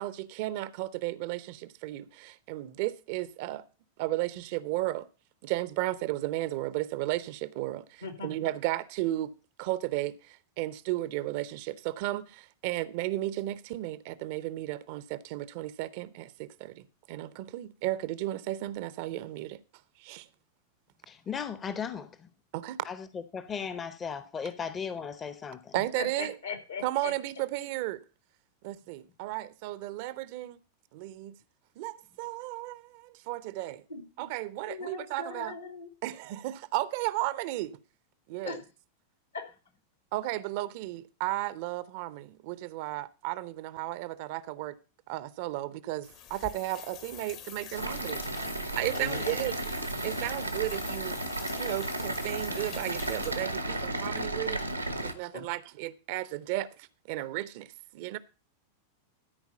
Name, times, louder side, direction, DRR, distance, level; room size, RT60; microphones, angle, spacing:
voice 1, 0.0-3.6 4.0-5.1 5.4-9.3 9.6-19.6 20.0-20.3 22.5-22.9 25.7-26.4 26.8-28.0 28.6-30.6 30.9-31.4 31.8-33.8 34.2-35.6 36.0-37.8 38.3-38.6 40.1-44.8 45.1-48.2 48.7-49.6 50.0-51.2 51.6-54.6 55.0-58.2, right 16 dB, 50° right, 0.7 m, -34 dB
voice 2, 21.1-22.3 22.9-25.7, left 6 dB, 20° left, 0.8 m, -36 dB
voice 3, 26.0-27.1 33.9-34.0 34.6-35.9 38.4-38.6 39.3-39.6 48.9-49.5 55.3-55.4, left 4 dB, 75° left, 2.8 m, -39 dB
sound 1, 46.0-53.9, left 10 dB, 40° left, 1.2 m, -46 dB
sound 2, 47.7-55.1, right 2 dB, 85° right, 1.2 m, -34 dB
13.5 x 4.6 x 6.8 m
figure-of-eight pair, 90°, 0 cm